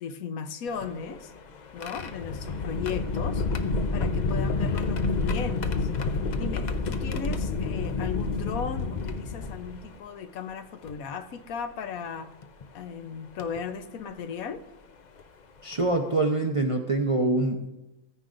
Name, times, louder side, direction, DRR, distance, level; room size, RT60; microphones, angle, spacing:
voice 1, 0.0-1.3 1.7-3.4 3.9-5.9 6.4-12.3 12.7-14.6, left 6 dB, 75° left, 9 dB, 1.2 m, -36 dB
sound 1, 0.7-10.0 10.9-11.0 12.4-12.6 13.4-13.6 15.2-15.3 15.7-15.9, left 3 dB, 50° left, 0.5 m, -29 dB
voice 2, 15.6-17.7, right 2 dB, 40° right, 3 dB, 0.5 m, -25 dB
15.0 x 9.6 x 2.5 m, 0.96 s
omnidirectional pair, 1.5 m